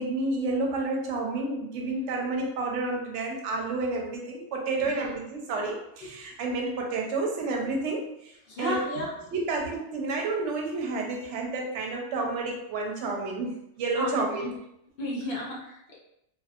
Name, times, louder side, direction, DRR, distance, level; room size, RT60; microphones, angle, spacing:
voice 1, 0.0-8.8 9.3-14.5, right 3 dB, 70° right, 0 dB, 0.9 m, -30 dB
voice 2, 8.5-9.1 14.0-14.1 15.0-16.0, equal, 55° left, -3 dB, 0.8 m, -32 dB
2.6 x 2.3 x 2.4 m, 0.79 s
omnidirectional pair, 1.3 m